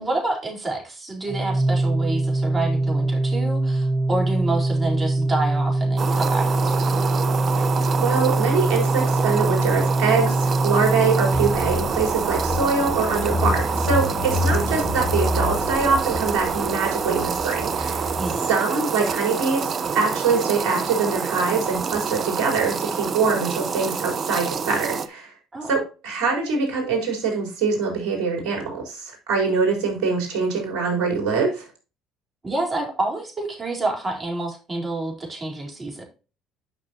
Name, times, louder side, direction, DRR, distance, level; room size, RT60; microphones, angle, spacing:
voice 1, 0.0-7.0 18.2-18.5 25.5-25.7 32.4-36.0, right 2 dB, 25° right, 0 dB, 4.1 m, -28 dB
Organ, 1.3-12.2, right 2 dB, 10° right, 0.5 m, -23 dB
sound 1, 6.0-25.1, right 6 dB, 45° right, 0.8 m, -27 dB
voice 2, 8.0-25.3 25.7-31.7, right 5 dB, 65° right, 0 dB, 4.2 m, -24 dB
Car / Engine, 11.3-18.4, left 2 dB, 45° left, 0.9 m, -28 dB
10.5 x 6.1 x 2.9 m, 0.33 s
hypercardioid pair, 60°, 0 cm